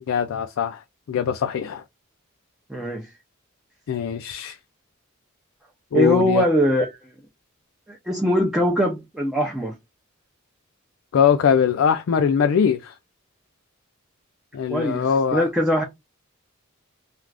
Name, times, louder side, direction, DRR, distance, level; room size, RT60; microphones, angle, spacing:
voice 1, 0.1-0.8 1.1-1.8 3.9-4.6 5.9-6.4 11.1-12.9 14.5-15.5, left 7 dB, 65° left, 0.3 m, -21 dB
voice 2, 2.7-3.1 5.9-6.9 7.9-9.7 14.7-15.8, equal, 5° right, 0.5 m, -21 dB
2.4 x 2.3 x 3.2 m
head